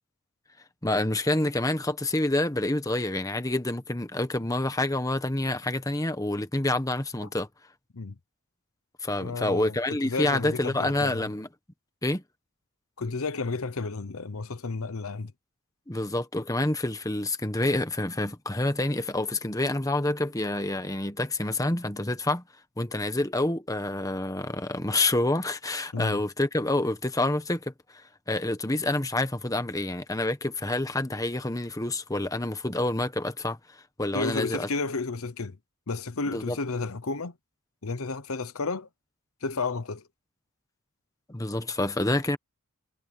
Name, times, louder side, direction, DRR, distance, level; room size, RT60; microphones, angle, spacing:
voice 1, 0.8-7.5 9.0-11.5 12.0-12.2 15.9-22.4 22.8-33.6 34.0-34.7 36.3-36.6 41.3-42.4, left 2 dB, 15° left, 1.3 m, -28 dB
voice 2, 9.2-9.8 10.0-11.3 13.0-15.3 25.9-26.2 34.1-35.6 35.9-37.3 37.8-38.9 39.4-40.0, left 3 dB, 75° left, 0.9 m, -32 dB
head